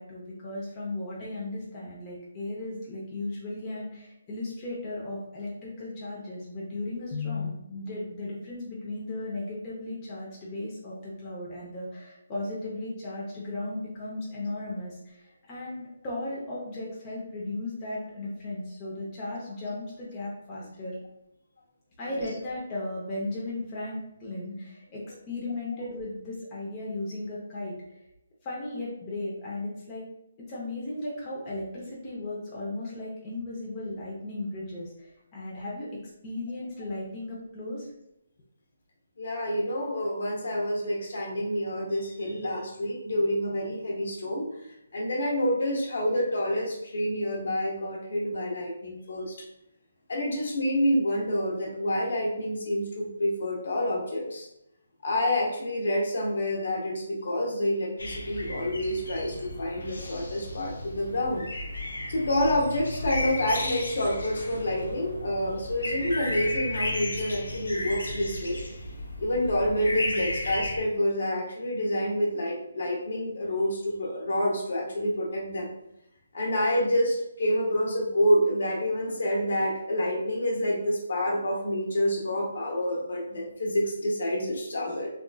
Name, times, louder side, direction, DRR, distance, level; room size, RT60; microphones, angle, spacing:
voice 1, 0.0-15.2 15.5-21.0 22.0-27.8 28.4-30.0 30.5-37.8, left 2 dB, 20° left, -6 dB, 0.8 m, -36 dB
voice 2, 39.2-44.5 44.9-49.3 50.1-54.5 55.0-61.5 62.1-68.6 69.2-75.7 76.3-85.1, left 1 dB, 65° left, -2 dB, 1.1 m, -28 dB
sound 1, 58.0-70.8, left 2 dB, 85° left, 0.7 m, -34 dB
3.5 x 2.5 x 2.3 m, 0.82 s
hypercardioid pair, 165°, 0 cm